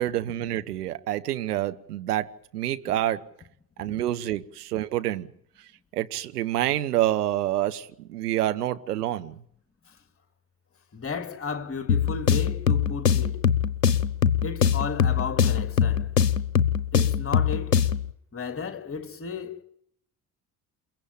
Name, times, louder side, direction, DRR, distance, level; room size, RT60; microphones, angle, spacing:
voice 1, 0.0-3.3 3.8-5.3 5.9-9.3, right 13 dB, 75° right, 1.2 m, -27 dB
voice 2, 10.9-13.4 14.4-16.1 16.9-17.9 18.3-19.6, left 5 dB, 30° left, 3.2 m, -34 dB
sound 1, 11.9-18.1, left 8 dB, 85° left, 1.0 m, -23 dB
28.5 x 15.5 x 9.0 m
figure-of-eight pair, 55°, 47 cm